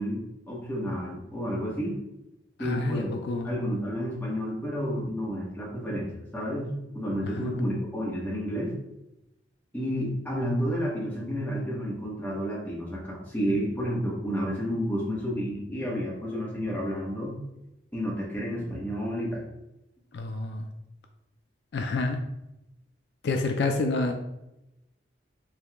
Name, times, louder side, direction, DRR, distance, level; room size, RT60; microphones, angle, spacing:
voice 1, 0.0-2.0 2.6-3.1 3.4-8.7 9.7-17.4 17.9-19.4, equal, 10° left, -4 dB, 0.9 m, -30 dB
voice 2, 2.6-3.5 7.4-7.5 20.1-20.7 21.7-22.2 23.2-24.1, left 3 dB, 60° left, 4 dB, 0.4 m, -28 dB
4.7 x 2.3 x 3.4 m, 0.91 s
head